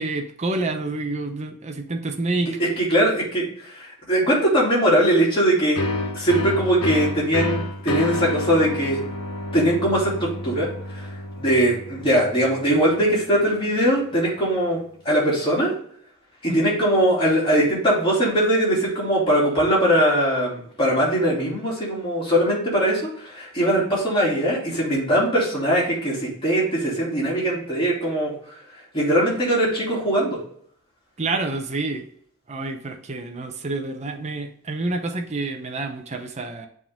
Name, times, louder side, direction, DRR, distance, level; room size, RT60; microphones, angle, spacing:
voice 1, 0.0-2.6 16.5-16.6 31.2-32.1 32.5-36.7, right 2 dB, 30° right, 4 dB, 0.7 m, -28 dB
voice 2, 2.8-5.8 6.1-9.0 9.5-11.1 11.4-14.8 15.0-15.7 16.4-28.3 28.9-30.4, right 1 dB, 20° left, -6 dB, 2.7 m, -21 dB
sound 1, 5.8-13.2, left 1 dB, 80° left, 0.9 m, -29 dB
7.4 x 3.7 x 3.5 m, 0.62 s
head